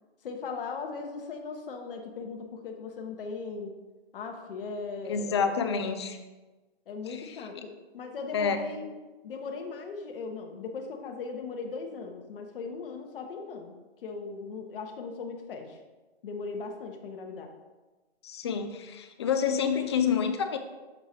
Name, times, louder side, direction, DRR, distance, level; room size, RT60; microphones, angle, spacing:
voice 1, 0.2-3.7 4.1-5.6 6.9-8.9 9.2-13.7 14.0-15.8 16.2-17.5, left 4 dB, 60° left, 3 dB, 1.2 m, -38 dB
voice 2, 5.0-6.2 7.1-7.6 8.3-8.7 18.2-20.6, left 6 dB, 25° left, 8 dB, 0.4 m, -28 dB
6.8 x 4.6 x 4.3 m, 1.2 s
hypercardioid pair, 145°, 31 cm